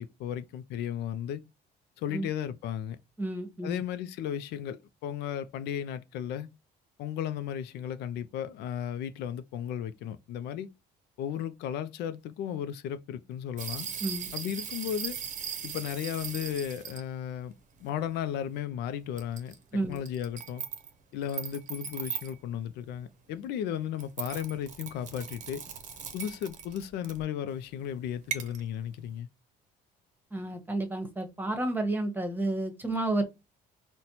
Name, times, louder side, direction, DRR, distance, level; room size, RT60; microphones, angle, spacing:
voice 1, 0.0-1.4 2.0-3.0 3.6-6.5 7.0-10.7 11.2-13.9 14.3-15.2 15.6-17.5 17.8-19.6 19.9-20.6 21.1-25.6 26.1-29.3, left 9 dB, 80° left, 0.4 m, -35 dB
voice 2, 3.2-3.8 14.0-14.3 19.7-20.0 30.3-33.2, right 2 dB, 10° right, 1.0 m, -31 dB
sound 1, 13.6-17.0 17.8-17.9 19.2-19.6 19.9-20.9 21.2-22.4 24.0-27.2 28.3-28.6, right 8 dB, 50° right, 0.7 m, -38 dB
4.1 x 2.1 x 2.8 m
cardioid pair, 110°, 17 cm